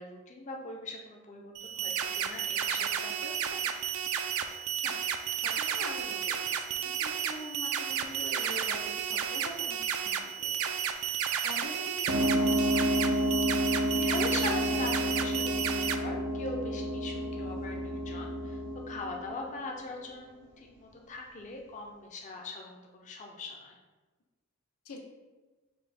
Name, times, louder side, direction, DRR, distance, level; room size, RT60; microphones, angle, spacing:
voice 1, 0.0-3.7 13.6-18.6 18.9-23.8, left 3 dB, 35° left, 1 dB, 0.4 m, -41 dB
sound 1, 1.5-15.9, right 8 dB, 75° right, 0.3 m, -32 dB
voice 2, 5.3-11.1 11.4-12.8 24.8-25.0, left 2 dB, 90° left, 2 dB, 0.7 m, -44 dB
sound 2, 12.1-20.2, equal, 60° right, 0.7 m, -30 dB
5.3 x 2.1 x 4.1 m, 1.2 s
head